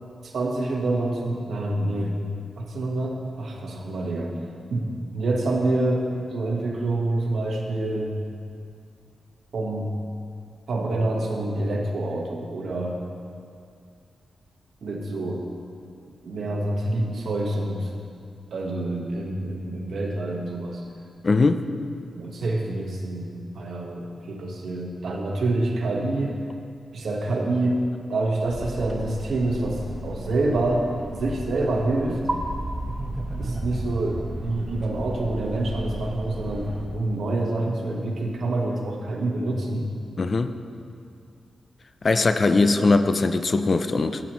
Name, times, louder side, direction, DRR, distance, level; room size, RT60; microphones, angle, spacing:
voice 1, 0.2-2.2 2.6-4.4 4.7-8.1 9.5-9.9 10.7-13.0 14.8-15.5 16.2-17.9 18.5-20.8 22.2-23.3 23.5-26.4 26.9-32.2 33.4-39.9 42.5-42.9, right 2 dB, 70° right, 0 dB, 1.4 m, -27 dB
voice 2, 21.2-21.7 40.2-40.6 42.0-44.2, left 3 dB, 40° left, 9 dB, 0.5 m, -20 dB
sound 1, 28.5-36.9, right 1 dB, 25° right, 1.1 m, -33 dB
14.5 x 9.0 x 3.1 m, 2.3 s
wide cardioid pair, 100°, 0 cm